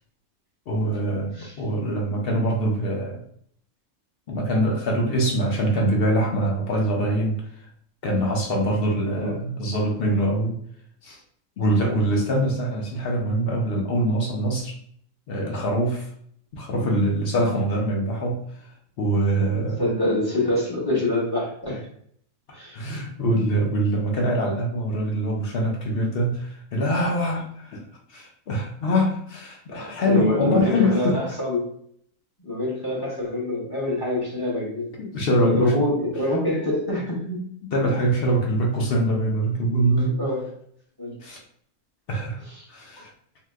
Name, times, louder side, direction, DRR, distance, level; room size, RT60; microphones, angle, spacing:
voice 1, 0.7-3.2 4.3-7.5 8.0-10.6 11.0-11.2 11.6-14.8 15.3-16.1 16.5-18.5 19.0-19.9 22.5-31.2 35.0-35.8 37.7-40.2 41.2-41.4 42.1-42.4 42.7-43.1, right 1 dB, 75° left, 0 dB, 0.5 m, -24 dB
voice 2, 19.8-21.9 22.5-22.8 29.7-31.7 32.4-34.9 35.4-37.4 40.2-40.5 41.0-41.2 42.5-42.7, left 1 dB, 20° left, -5 dB, 0.7 m, -26 dB
2.8 x 2.1 x 3.3 m, 0.64 s
omnidirectional pair, 1.6 m